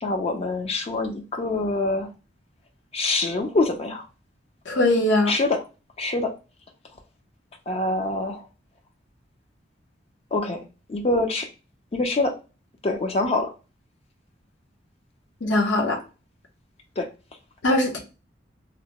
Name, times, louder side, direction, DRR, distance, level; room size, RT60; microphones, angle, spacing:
voice 1, 0.0-2.1 2.9-4.1 5.3-5.6 6.0-6.3 7.7-8.5 10.3-10.6 10.9-11.5 11.9-12.4 12.8-13.5 17.0-17.1, left 2 dB, 35° left, 4 dB, 0.4 m, -25 dB
voice 2, 4.7-5.3 15.4-16.0 17.6-18.0, left 1 dB, 80° left, 1 dB, 0.7 m, -21 dB
2.9 x 2.1 x 2.8 m, 0.31 s
head